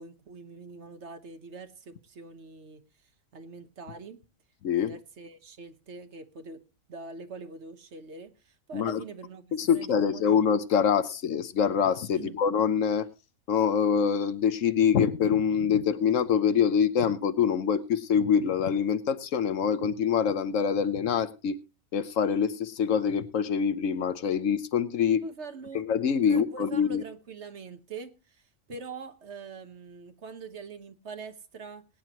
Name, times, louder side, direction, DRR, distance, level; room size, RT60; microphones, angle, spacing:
voice 1, 0.0-2.8 3.3-4.2 4.7-6.6 6.9-9.4 9.7-10.3 12.1-12.4 25.2-25.8 26.3-31.9, right 4 dB, 60° right, 1.4 m, -43 dB
voice 2, 4.6-4.9 8.7-9.0 9.5-13.1 13.5-21.6 21.9-25.2 25.7-27.0, left 7 dB, 75° left, 1.2 m, -25 dB
21.5 x 9.5 x 3.0 m
omnidirectional pair, 1.4 m